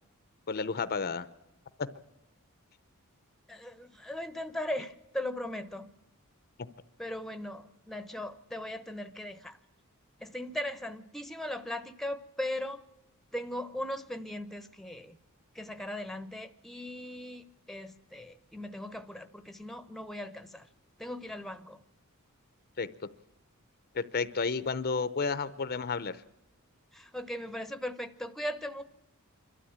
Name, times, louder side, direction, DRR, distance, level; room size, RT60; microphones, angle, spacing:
voice 1, 0.5-1.3 22.8-22.9 23.9-26.2, left 4 dB, 45° left, 14 dB, 0.7 m, -31 dB
voice 2, 3.5-5.9 7.0-9.6 10.2-12.8 13.3-15.2 15.5-20.7 21.0-21.8 26.9-28.8, left 1 dB, ahead, 10 dB, 0.8 m, -38 dB
26.5 x 12.5 x 8.7 m, 0.93 s
head